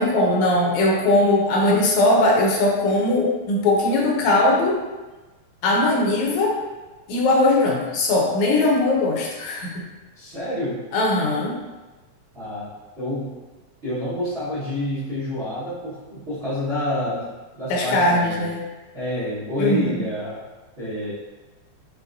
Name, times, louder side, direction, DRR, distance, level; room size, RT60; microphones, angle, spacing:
voice 1, 0.0-4.8 5.6-6.6 7.1-9.8 10.9-11.6 17.7-18.6 19.6-20.0, left 2 dB, 75° left, -1 dB, 1.9 m, -20 dB
voice 2, 10.1-10.8 12.3-12.7 13.0-13.3 13.8-17.3 17.5-18.5 18.9-20.4 20.8-21.1, left 1 dB, 75° right, -12 dB, 0.5 m, -28 dB
5.9 x 3.0 x 2.5 m, 1.2 s
omnidirectional pair, 3.4 m